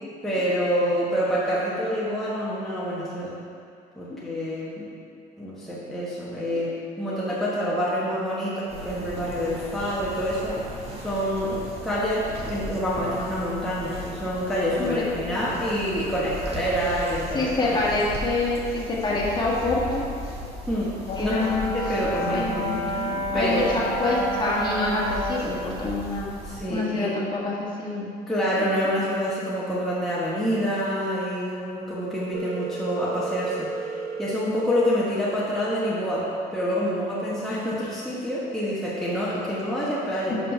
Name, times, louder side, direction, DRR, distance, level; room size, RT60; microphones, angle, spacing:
voice 1, 0.2-3.3 4.0-4.9 5.4-6.7 7.0-10.5 11.0-17.8 20.7-20.9 21.2-21.5 21.7-23.1 23.3-23.7 26.4-27.2 28.3-33.9 34.2-40.4, equal, ahead, -8 dB, 1.1 m, -27 dB
sound 1, 8.7-26.6, right 1 dB, 35° right, 1.5 m, -37 dB
voice 2, 17.3-20.0 21.1-21.7 22.0-26.3 26.7-28.1 28.6-28.7, left 2 dB, 25° left, -5 dB, 1.6 m, -27 dB
Brass instrument, 21.1-25.4, equal, 60° left, 1.0 m, -30 dB
Telephone, 32.3-34.3, right 6 dB, 80° right, 0.8 m, -33 dB
5.8 x 5.0 x 5.5 m, 2.4 s
cardioid pair, 110°, 17 cm